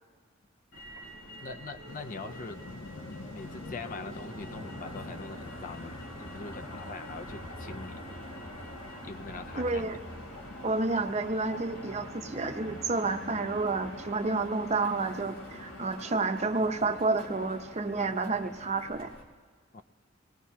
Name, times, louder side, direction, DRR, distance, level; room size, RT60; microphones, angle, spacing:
Motor vehicle (road), 0.7-19.2, equal, 90° left, 3.0 m, -45 dB
voice 1, 1.4-2.7 3.3-8.0 9.0-9.9 19.7-19.8, left 4 dB, 45° left, 9 dB, 0.5 m, -42 dB
sound 1, 1.9-16.3, left 2 dB, 70° left, 0.8 m, -49 dB
voice 2, 9.5-10.0 10.6-19.1, right 3 dB, 35° right, 7 dB, 0.7 m, -30 dB
26.0 x 19.5 x 2.8 m, 1.5 s
head